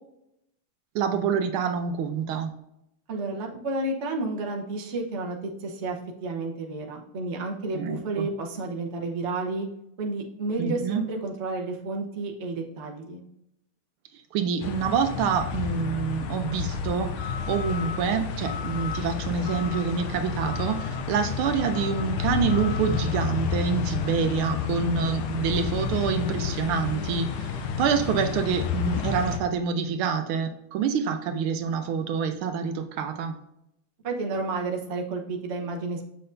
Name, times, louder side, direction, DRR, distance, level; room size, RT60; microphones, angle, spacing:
voice 1, 0.9-2.5 7.7-8.3 10.6-11.0 14.3-33.4, right 6 dB, 75° right, 8 dB, 1.5 m, -27 dB
voice 2, 3.1-9.7 10.0-13.2 34.0-36.0, right 3 dB, 45° right, 1 dB, 1.0 m, -31 dB
sound 1, 14.6-29.4, left 7 dB, 85° left, 1.6 m, -30 dB
7.6 x 6.5 x 2.6 m, 0.81 s
omnidirectional pair, 2.4 m